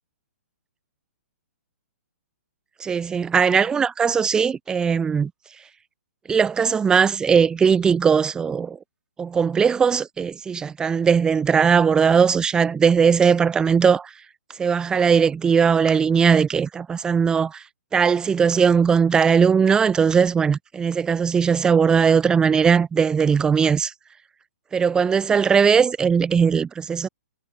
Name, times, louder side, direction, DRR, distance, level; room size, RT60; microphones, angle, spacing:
voice 1, 2.8-5.3 6.3-8.8 9.2-14.1 14.6-17.6 17.9-23.9 24.7-27.1, right 6 dB, 10° right, 0.9 m, -19 dB
hypercardioid pair, 160°, 8 cm